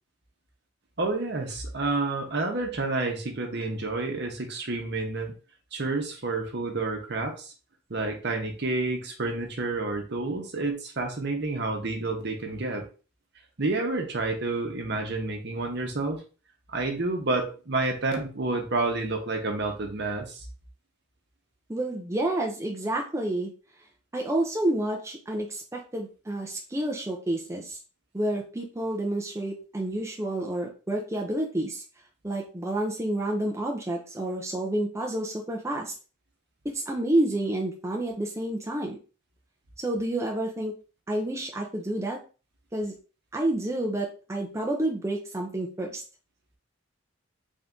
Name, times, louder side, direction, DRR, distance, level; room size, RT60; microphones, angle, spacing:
voice 1, 1.0-5.3 5.7-7.5 7.9-12.8 13.6-16.2 16.7-20.4, right 3 dB, 55° right, 3 dB, 0.9 m, -29 dB
voice 2, 21.7-23.5 24.1-27.8 28.1-31.8 32.2-35.9 36.7-39.0 39.8-40.7 41.1-42.2 42.7-42.9 43.3-46.0, right 1 dB, 15° right, 0 dB, 0.5 m, -29 dB
3.6 x 2.7 x 3.6 m, 0.35 s
head